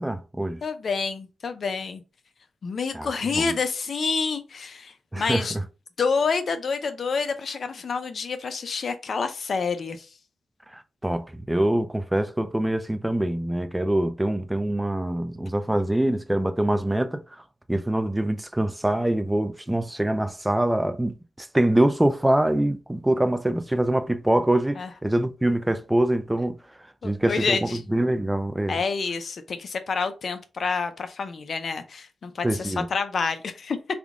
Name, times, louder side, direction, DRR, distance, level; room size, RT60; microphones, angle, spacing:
voice 1, 0.0-0.6 2.9-3.5 5.1-5.6 10.7-17.4 17.7-26.6 27.0-28.8 32.4-32.9, right 1 dB, 10° right, 0.4 m, -24 dB
voice 2, 0.6-2.0 2.6-5.6 6.0-10.1 24.8-24.9 27.0-27.8 28.7-33.8, left 5 dB, 60° left, 0.5 m, -28 dB
3.5 x 2.3 x 3.6 m
cardioid pair, 85°, 0 cm